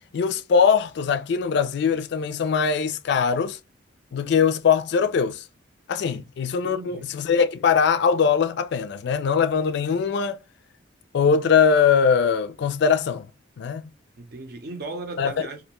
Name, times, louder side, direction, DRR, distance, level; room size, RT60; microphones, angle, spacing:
voice 1, 0.1-3.6 4.1-5.4 5.9-10.4 11.1-13.3 13.6-13.9 15.2-15.5, left 6 dB, 60° left, 0.3 m, -21 dB
voice 2, 6.6-7.1 14.2-15.6, right 3 dB, 55° right, 0.6 m, -37 dB
2.4 x 2.2 x 2.9 m
head